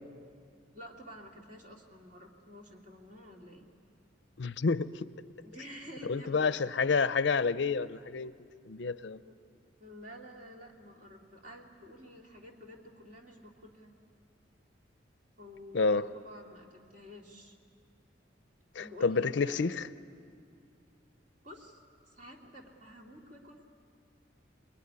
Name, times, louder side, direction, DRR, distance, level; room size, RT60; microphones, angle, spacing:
voice 1, 0.7-3.7 5.4-6.6 9.2-9.4 9.8-14.0 15.4-17.6 18.8-19.7 21.4-21.8 22.1-23.7, equal, 40° right, 2.8 m, -50 dB
voice 2, 4.4-5.1 6.1-8.3 8.7-9.2 15.7-16.0 18.8-19.9, left 4 dB, 65° left, 0.5 m, -29 dB
24.0 x 21.0 x 9.7 m
head